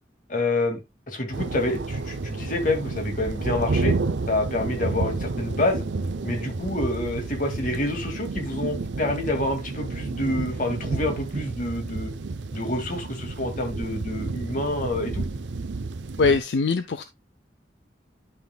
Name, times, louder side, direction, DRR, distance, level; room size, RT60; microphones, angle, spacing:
voice 1, 0.3-0.8 1.1-3.9 4.3-5.9 6.2-12.1 12.5-15.2, left 2 dB, 45° left, 2.1 m, -27 dB
sound 1, 1.3-16.4, right 3 dB, 75° right, 0.6 m, -30 dB
voice 2, 16.2-17.0, left 4 dB, 70° left, 0.5 m, -22 dB
10.5 x 5.8 x 2.3 m
head